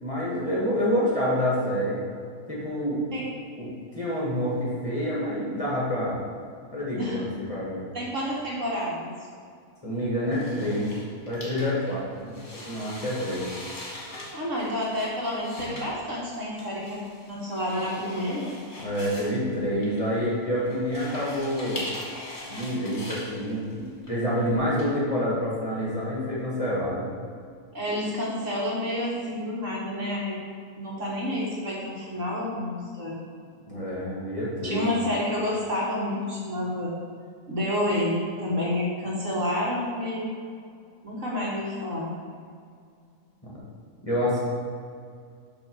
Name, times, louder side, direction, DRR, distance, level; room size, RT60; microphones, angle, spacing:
voice 1, 0.0-2.0 2.5-3.0 3.6-6.2 6.7-7.2 7.5-7.9 9.8-10.9 11.3-12.3 12.7-13.5 18.8-21.8 22.5-23.8 24.1-27.1 33.7-34.8 43.4-43.5 44.0-44.4, equal, 25° left, -7 dB, 1.6 m, -27 dB
voice 2, 7.9-9.1 14.3-17.0 17.3-18.5 27.7-30.4 30.8-33.2 34.6-36.9 37.5-40.3 41.0-42.1, left 1 dB, 55° right, -5 dB, 1.7 m, -29 dB
sound 1, 10.3-24.8, left 1 dB, 45° left, 1.8 m, -41 dB
7.8 x 3.5 x 6.1 m, 2.2 s
omnidirectional pair, 1.6 m